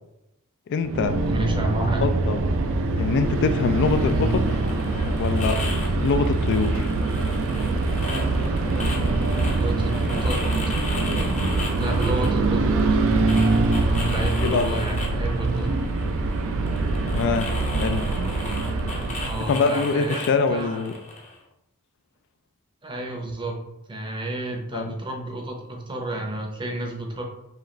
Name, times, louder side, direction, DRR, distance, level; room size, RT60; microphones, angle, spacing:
voice 1, 0.7-1.2 2.0-2.6 3.0-4.3 5.1-6.9 14.4-14.8 17.1-17.5 17.8-18.1 19.5-20.9 24.7-24.9, left 4 dB, 55° left, 9 dB, 0.3 m, -24 dB
sound 1, 0.8-19.6, right 3 dB, 65° right, 0.4 m, -24 dB
voice 2, 1.3-2.1 9.6-10.5 11.8-12.7 14.0-15.6 19.2-20.8 22.8-27.2, right 2 dB, 20° right, 1 dB, 0.6 m, -30 dB
sound 2, 3.8-21.4, left 2 dB, 30° left, 0.7 m, -36 dB
4.9 x 2.5 x 3.1 m, 0.89 s
head